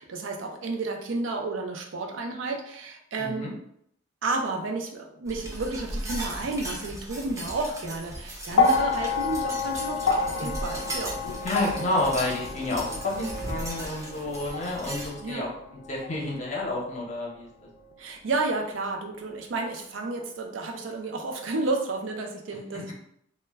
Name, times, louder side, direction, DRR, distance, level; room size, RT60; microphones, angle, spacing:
voice 1, 0.0-3.6 4.2-11.2 15.2-15.5 18.0-22.9, right 3 dB, 80° right, 2 dB, 0.4 m, -31 dB
voice 2, 3.2-3.5 11.4-15.5 15.9-17.5, left 2 dB, 40° left, -3 dB, 0.6 m, -30 dB
sound 1, 5.3-15.1, right 1 dB, 15° right, 0.6 m, -37 dB
sound 2, 8.5-16.9 17.9-18.0, left 4 dB, 85° left, 0.3 m, -29 dB
2.1 x 2.1 x 3.3 m, 0.71 s
head